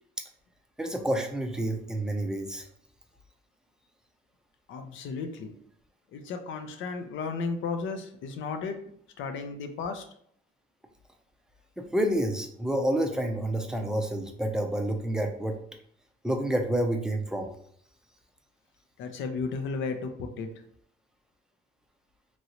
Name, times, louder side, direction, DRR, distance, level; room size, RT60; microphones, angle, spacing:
voice 1, 0.8-2.7 11.8-15.6 16.2-17.5, right 1 dB, 5° right, 3 dB, 0.4 m, -29 dB
voice 2, 4.7-5.5 6.1-8.8 9.2-10.0 19.0-20.5, left 4 dB, 75° left, 7 dB, 0.5 m, -34 dB
3.0 x 2.6 x 2.9 m, 0.65 s
cardioid pair, 130°, 20 cm